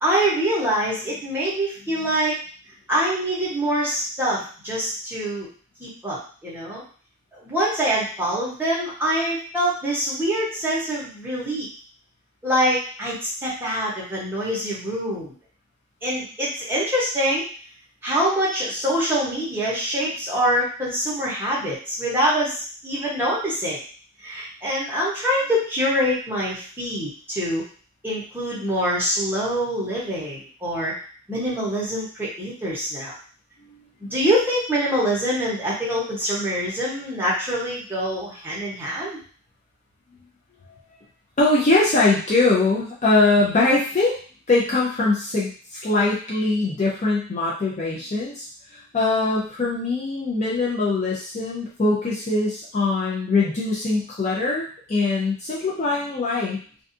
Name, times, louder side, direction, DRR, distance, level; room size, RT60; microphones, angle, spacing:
voice 1, 0.0-2.3 2.9-5.5 5.8-6.8 7.3-11.7 12.4-15.3 16.0-17.4 18.0-23.8 24.2-27.6 28.0-30.9 31.3-33.1 34.0-39.2, equal, 10° right, -7 dB, 0.9 m, -25 dB
voice 2, 41.4-44.2 44.5-48.5 48.7-56.6, left 3 dB, 30° left, -5 dB, 0.4 m, -22 dB
2.6 x 2.3 x 2.5 m, 0.42 s
head